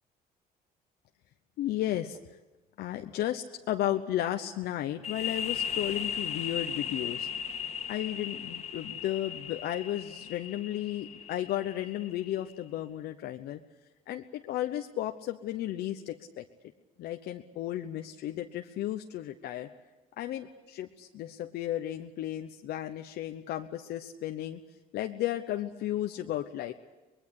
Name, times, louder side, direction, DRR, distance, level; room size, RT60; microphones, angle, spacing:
voice 1, 1.6-2.2 2.8-7.3 7.9-13.6 14.1-16.5 17.0-19.7 20.2-24.6 24.9-26.7, left 12 dB, 75° left, 5 dB, 0.9 m, -34 dB
sound 1, 5.0-12.5, left 8 dB, 40° left, 1.9 m, -37 dB
24.5 x 20.5 x 8.3 m, 1.1 s
cardioid pair, 110°, 17 cm